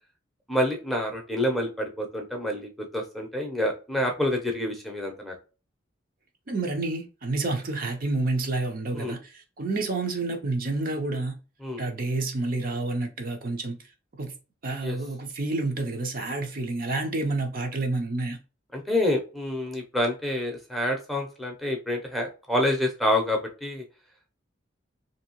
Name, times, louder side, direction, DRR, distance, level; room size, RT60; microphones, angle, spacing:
voice 1, 0.5-5.3 8.9-9.2 11.6-11.8 14.8-15.0 18.7-23.8, left 1 dB, ahead, 0.6 m, -27 dB
voice 2, 6.5-11.4 11.8-13.8 14.2-14.4 14.6-18.4, right 2 dB, 45° right, 0.6 m, -29 dB
2.9 x 2.7 x 2.9 m
head